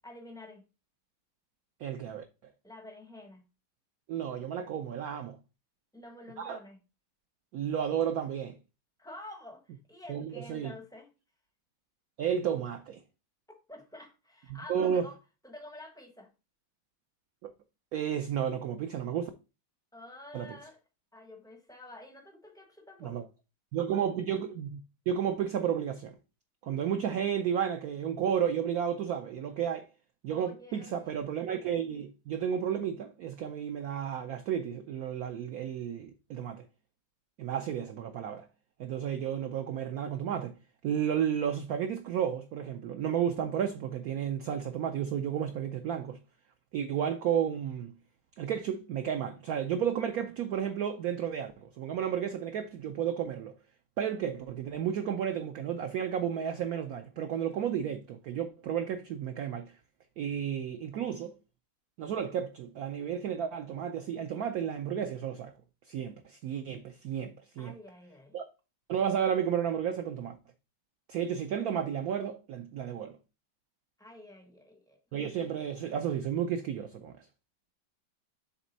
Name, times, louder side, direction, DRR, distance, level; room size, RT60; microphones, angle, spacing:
voice 1, 0.0-0.6 2.6-3.4 5.9-6.8 9.0-11.1 13.7-15.2 15.4-16.3 19.9-20.8 21.1-23.3 30.3-31.1 67.6-68.4 74.0-75.0, left 1 dB, 5° left, 0.3 m, -49 dB
voice 2, 1.8-2.3 4.1-5.4 6.4-6.6 7.5-8.6 10.1-10.7 12.2-13.0 14.5-15.1 17.4-17.5 17.9-19.3 20.3-20.5 23.0-23.3 23.7-24.8 25.1-26.2 26.6-29.9 30.2-36.6 37.4-38.4 38.8-40.5 40.8-46.2 46.7-47.9 48.4-53.5 54.0-59.7 60.2-61.3 62.0-65.5 65.9-67.7 68.3-68.4 68.9-70.4 71.1-73.2 75.1-77.3, right 8 dB, 85° right, 0.8 m, -32 dB
7.2 x 3.3 x 4.0 m
omnidirectional pair, 2.2 m